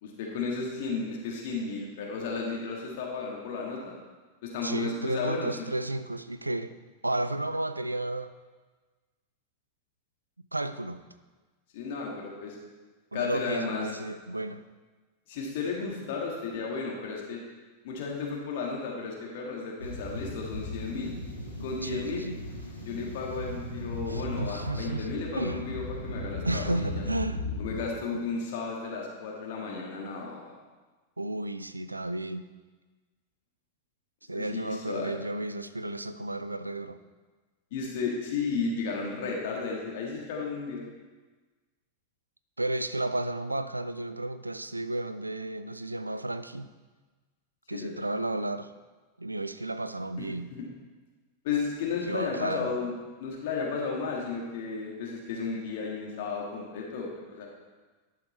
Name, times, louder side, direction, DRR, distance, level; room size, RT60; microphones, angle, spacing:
voice 1, 0.0-3.8 4.4-5.7 11.7-12.6 13.1-13.9 15.3-17.4 17.8-21.1 21.6-22.3 22.8-27.0 27.6-30.5 34.3-35.2 37.7-40.9 47.7-47.9 50.2-50.3 50.5-50.6 51.4-52.9 53.2-57.5, left 4 dB, 50° left, -1 dB, 1.7 m, -33 dB
voice 2, 4.6-6.7 7.0-8.3 10.5-11.0 13.1-14.6 21.8-22.4 24.1-25.6 26.4-27.5 28.1-28.2 31.2-32.5 34.3-37.0 42.6-46.7 47.7-48.7 49.2-50.5 52.1-52.8, right 2 dB, 85° right, 12 dB, 0.4 m, -33 dB
sound 1, 19.8-27.8, left 2 dB, 90° left, 1.7 m, -37 dB
12.0 x 6.5 x 4.2 m, 1.3 s
figure-of-eight pair, 90°, 0 cm